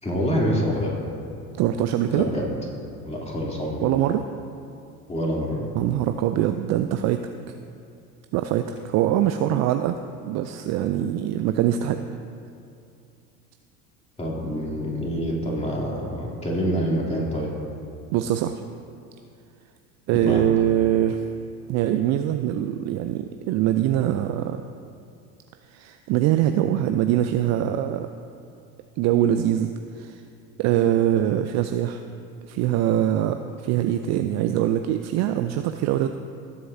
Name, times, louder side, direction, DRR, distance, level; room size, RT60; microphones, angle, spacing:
voice 1, 0.0-1.0 2.1-2.5 3.0-3.9 5.1-5.7 14.2-17.5 20.2-20.4, equal, 15° left, -3 dB, 2.8 m, -26 dB
voice 2, 1.6-2.3 3.8-4.2 5.7-7.3 8.3-9.9 10.2-12.0 18.1-18.6 20.1-21.2 21.7-24.6 25.7-28.1 29.0-30.2 30.6-32.0 32.5-36.1, right 11 dB, 40° right, 8 dB, 0.4 m, -23 dB
18.5 x 7.7 x 2.7 m, 2.4 s
figure-of-eight pair, 70°, 47 cm